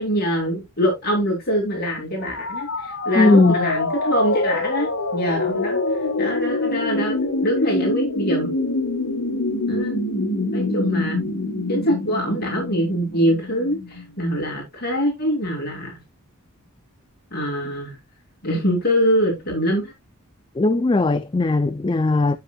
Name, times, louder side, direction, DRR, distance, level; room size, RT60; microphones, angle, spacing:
voice 1, 0.0-5.8 6.2-8.5 9.7-10.0 10.5-11.2 11.7-15.9 17.3-18.0 18.4-19.9, equal, 45° left, 2.7 m, -23 dB
sound 1, 2.2-14.1, left 2 dB, 70° left, 1.7 m, -25 dB
voice 2, 3.2-3.6 20.6-22.4, left 2 dB, 20° left, 0.4 m, -18 dB
10.5 x 6.1 x 2.3 m
head